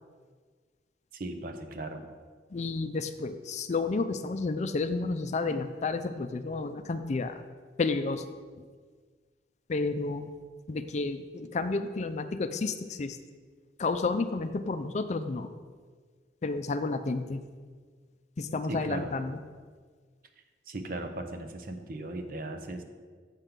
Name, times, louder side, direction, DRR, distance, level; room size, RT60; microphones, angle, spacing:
voice 1, 1.1-2.0 18.7-19.1 20.7-22.8, right 2 dB, 55° right, 6 dB, 0.8 m, -37 dB
voice 2, 2.5-7.4 7.8-8.2 9.7-10.3 10.7-13.2 13.8-15.5 16.4-17.4 18.4-19.4, left 3 dB, 40° left, 10 dB, 0.4 m, -31 dB
7.3 x 5.2 x 5.9 m, 1.6 s
head